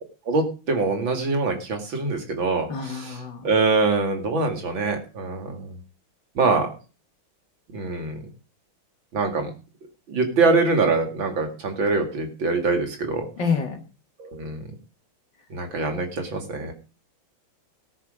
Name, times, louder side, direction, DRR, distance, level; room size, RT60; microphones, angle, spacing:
voice 1, 0.3-3.2 3.4-5.8 6.3-6.7 7.7-8.2 9.1-9.5 10.1-13.3 14.2-14.7 15.5-16.7, right 3 dB, 65° right, 4 dB, 3.0 m, -24 dB
voice 2, 2.7-3.5 13.4-13.8, left 5 dB, 60° left, 4 dB, 2.6 m, -27 dB
18.5 x 6.4 x 5.0 m, 0.34 s
omnidirectional pair, 2.3 m